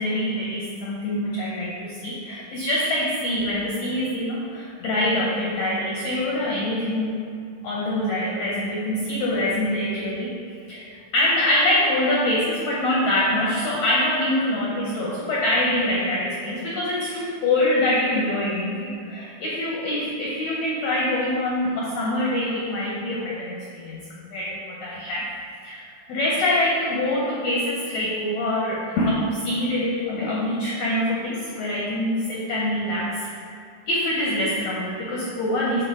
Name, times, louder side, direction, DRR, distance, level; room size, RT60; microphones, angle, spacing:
voice 1, 0.0-7.2 7.6-10.3 10.7-10.8 11.1-33.3 33.9-35.8, left 1 dB, 80° left, -5 dB, 1.5 m, -25 dB
8.9 x 4.0 x 3.7 m, 2.4 s
omnidirectional pair, 4.1 m